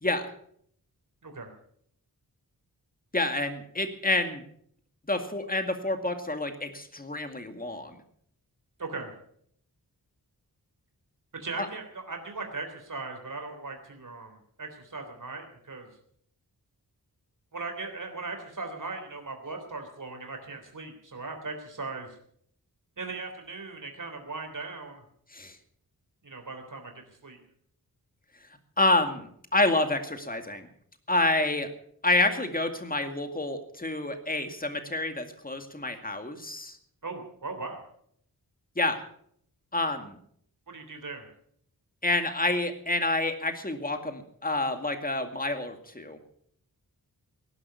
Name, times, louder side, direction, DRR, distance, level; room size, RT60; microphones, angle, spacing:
voice 1, 3.1-4.4 5.1-8.0 11.6-11.7 25.3-25.6 28.8-30.7 31.1-31.7 32.0-36.8 38.8-39.0 39.7-40.2 42.0-46.2, left 2 dB, 25° left, 7 dB, 2.2 m, -28 dB
voice 2, 8.8-9.1 11.3-15.9 17.5-22.2 23.0-25.1 26.2-27.4 37.0-37.8 40.7-41.3, right 3 dB, 55° right, 4 dB, 3.6 m, -38 dB
18.0 x 11.5 x 7.0 m, 0.65 s
wide cardioid pair, 95°, 38 cm